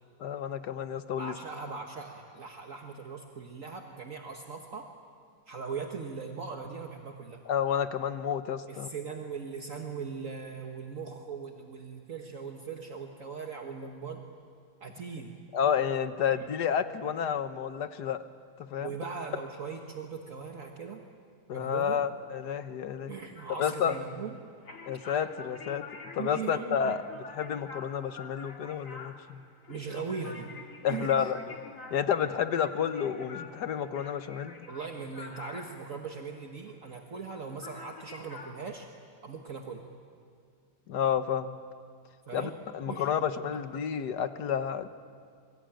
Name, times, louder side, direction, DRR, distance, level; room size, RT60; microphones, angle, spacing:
voice 1, 0.2-1.3 7.5-8.9 15.5-18.2 18.6-18.9 21.5-23.1 23.6-23.9 24.9-25.8 26.1-29.4 30.8-31.6 31.9-34.5 40.9-41.6 42.3-44.9, left 8 dB, 85° left, 10 dB, 1.6 m, -30 dB
voice 2, 1.2-4.9 5.5-7.4 8.7-14.2 14.8-15.4 16.3-16.5 18.8-21.0 21.5-22.0 23.1-24.3 26.2-26.9 29.7-30.5 30.9-31.3 34.7-38.9 39.2-39.8 42.3-42.5 42.9-43.3, right 5 dB, 55° right, 2 dB, 1.8 m, -39 dB
sound 1, 23.4-37.4 37.6-38.5, left 4 dB, 50° left, 2.2 m, -47 dB
27.5 x 24.0 x 9.1 m, 2.1 s
omnidirectional pair, 1.8 m